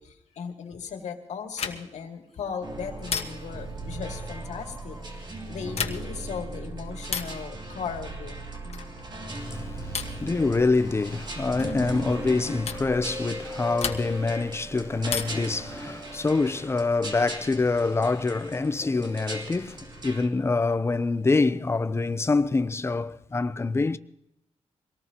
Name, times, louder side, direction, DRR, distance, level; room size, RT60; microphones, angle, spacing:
voice 1, 0.0-8.4, left 6 dB, 90° left, 2.1 m, -37 dB
sound 1, 1.5-2.1 3.1-3.7 5.6-6.3 7.1-7.5 8.7-9.0 9.9-10.3 11.6-11.8 12.7-12.9 13.8-14.3 15.1-15.6 17.0-17.7, left 6 dB, 65° left, 1.3 m, -34 dB
sound 2, 2.3-6.8, equal, 5° right, 6.3 m, -53 dB
sound 3, 2.6-20.3, right 2 dB, 40° right, 2.9 m, -38 dB
voice 2, 9.4-24.0, left 3 dB, 20° left, 0.6 m, -26 dB
24.5 x 18.5 x 2.9 m
wide cardioid pair, 120°, 12 cm